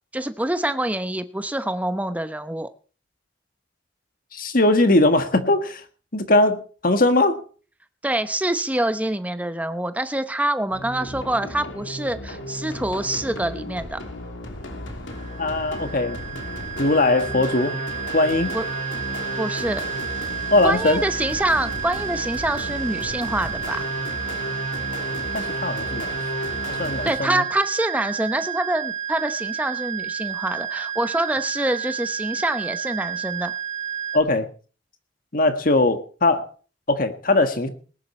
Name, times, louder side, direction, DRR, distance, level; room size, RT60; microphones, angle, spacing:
voice 1, 0.1-2.7 8.0-14.0 18.5-18.6 19.4-19.8 20.2-20.3 20.6-23.8 27.0-33.5, right 1 dB, 10° right, 0.9 m, -26 dB
voice 2, 4.3-5.8 6.1-7.4 15.4-16.3 16.8-17.8 18.1-18.5 20.5-21.0 25.3-26.2 26.7-27.4 34.1-34.5 35.3-36.5 36.9-37.7, left 2 dB, 50° left, 1.6 m, -20 dB
sound 1, 10.7-27.1, left 1 dB, 90° left, 3.0 m, -34 dB
sound 2, 15.1-34.2, right 9 dB, 40° right, 1.3 m, -31 dB
19.5 x 10.5 x 4.3 m
head